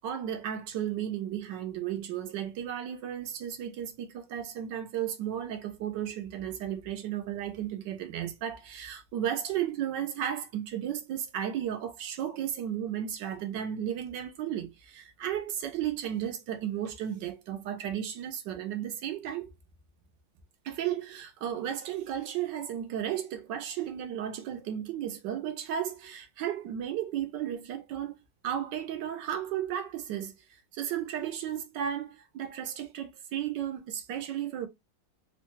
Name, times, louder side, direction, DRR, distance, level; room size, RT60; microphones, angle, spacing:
voice 1, 0.0-19.5 20.6-28.2 28.4-30.3 30.7-34.7, right 10 dB, 80° right, 1.3 m, -34 dB
3.7 x 2.2 x 2.9 m
omnidirectional pair, 1.9 m